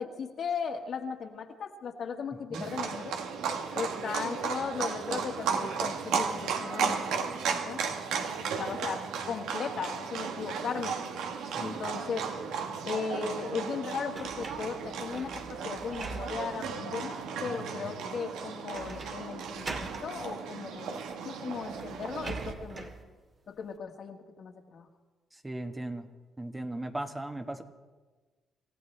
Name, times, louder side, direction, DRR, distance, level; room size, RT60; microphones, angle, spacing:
voice 1, 0.0-3.2 3.7-7.8 8.6-11.0 11.6-12.3 12.8-22.9 23.5-24.9, left 6 dB, 60° left, 3 dB, 1.6 m, -37 dB
Livestock farm animals working animals, 2.5-22.5, right 6 dB, 85° right, 1.3 m, -35 dB
sound 1, 14.1-16.7 17.2-17.3 18.7-19.2 19.5-20.1 21.1-21.2 21.5-23.0, right 3 dB, 40° right, 1.7 m, -42 dB
voice 2, 25.4-26.1 26.4-27.6, right 1 dB, 15° right, 6 dB, 1.2 m, -37 dB
27.0 x 15.0 x 3.3 m, 1.3 s
cardioid pair, 90°, 0 cm